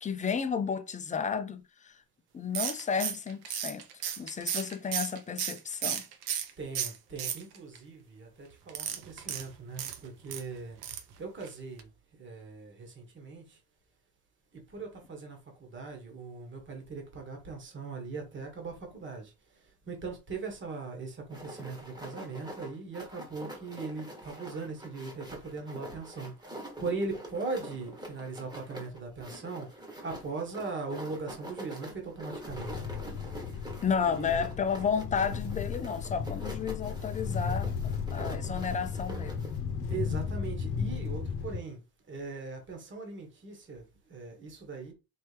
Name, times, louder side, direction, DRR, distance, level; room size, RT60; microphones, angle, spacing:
voice 1, 0.0-1.9 2.3-3.8 4.2-6.0 33.8-37.7 38.1-39.3, left 6 dB, 20° left, 0.4 m, -32 dB
sound 1, 2.5-6.5 6.7-7.8 8.7-10.4 10.8-11.1 11.4-11.5 11.8-11.9, right 9 dB, 80° right, 0.8 m, -34 dB
voice 2, 6.6-11.9 12.2-13.6 14.5-33.3 34.0-34.5 39.9-41.8 42.1-44.9, right 4 dB, 30° right, 1.3 m, -40 dB
sound 2, 21.3-39.6, right 1 dB, 10° right, 1.3 m, -45 dB
sound 3, 32.5-41.6, left 6 dB, 80° left, 0.8 m, -35 dB
4.4 x 3.0 x 3.3 m
cardioid pair, 135°, 37 cm